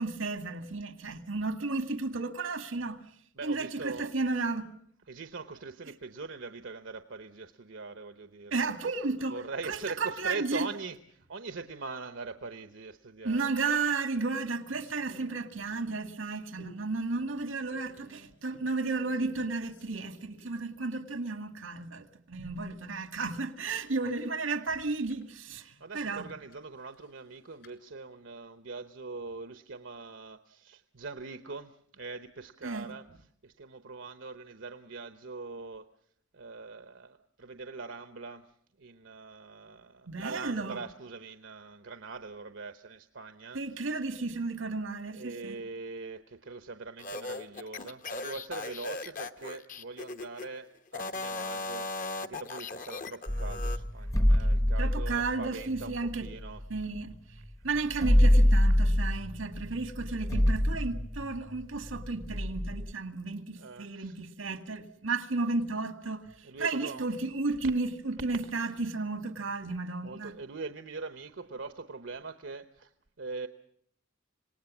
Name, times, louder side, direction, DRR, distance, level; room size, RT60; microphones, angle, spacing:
voice 1, 0.0-3.0 3.4-4.7 8.5-9.4 9.7-10.7 13.2-26.3 32.6-32.9 40.1-40.8 43.5-45.6 54.8-56.3 56.7-57.2 57.6-70.3, right 3 dB, 85° right, 1.9 m, -33 dB
voice 2, 3.3-4.1 5.1-8.7 9.3-13.5 25.8-35.9 36.3-43.6 45.1-56.9 57.4-57.7 63.6-64.2 66.4-67.1 70.0-73.5, right 4 dB, 70° right, 1.0 m, -42 dB
sound 1, 13.2-13.6 14.0-16.1 16.6-16.9 17.3-18.3 19.0-20.8 21.1-21.2 24.7-25.3 26.2-27.8, left 1 dB, 65° left, 4.6 m, -58 dB
sound 2, 47.0-50.5 50.9-53.8, left 3 dB, 40° left, 1.0 m, -38 dB
sound 3, 53.3-57.2 57.4-57.5 57.7-62.9, left 1 dB, 15° left, 0.8 m, -26 dB
26.5 x 19.0 x 7.2 m
head